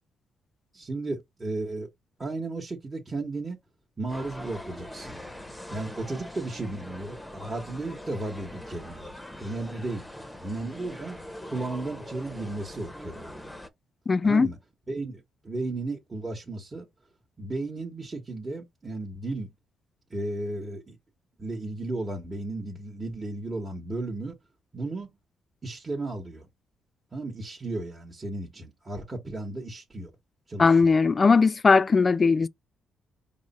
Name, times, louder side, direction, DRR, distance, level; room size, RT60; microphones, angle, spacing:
voice 1, 0.7-1.9 2.2-3.6 4.0-5.2 5.7-10.1 10.4-11.2 11.5-13.4 14.2-14.6 14.9-16.9 17.4-19.5 20.1-21.0 21.4-24.3 24.7-25.1 25.6-26.5 27.1-30.1 30.5-30.9, right 2 dB, 25° right, 1.1 m, -34 dB
sound 1, 4.1-13.7, left 1 dB, 10° left, 0.7 m, -42 dB
voice 2, 14.1-14.5 30.6-32.5, left 4 dB, 30° left, 0.3 m, -19 dB
4.7 x 2.1 x 4.0 m
cardioid pair, 90°, 0 cm